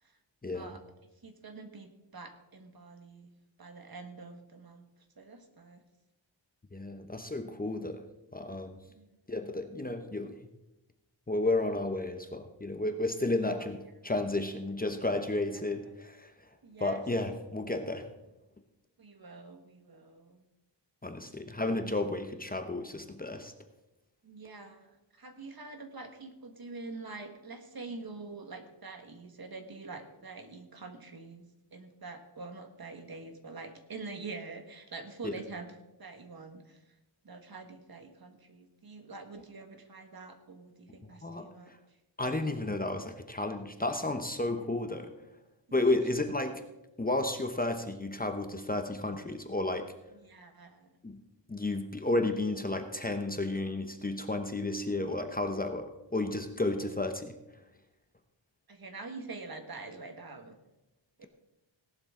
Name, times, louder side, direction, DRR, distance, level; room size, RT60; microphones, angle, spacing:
voice 1, 0.4-0.7 6.7-8.0 8.3-8.8 9.3-10.4 11.3-16.5 16.8-18.1 21.0-23.5 35.2-35.4 41.2-41.8 42.2-45.1 45.7-46.5 47.0-49.9 51.0-51.2 51.5-57.4, left 2 dB, 20° left, 6 dB, 0.9 m, -32 dB
voice 2, 1.2-3.3 3.6-4.8 5.2-5.8 8.9-9.1 13.4-13.7 15.5-15.6 16.0-16.1 16.6-17.2 19.0-20.4 24.2-31.5 31.7-35.7 36.0-36.8 37.2-41.7 45.7-46.0 50.2-50.9 58.7-60.6 61.2-61.3, right 3 dB, 50° right, 6 dB, 1.7 m, -46 dB
17.5 x 11.5 x 3.8 m, 0.97 s
wide cardioid pair, 110°, 46 cm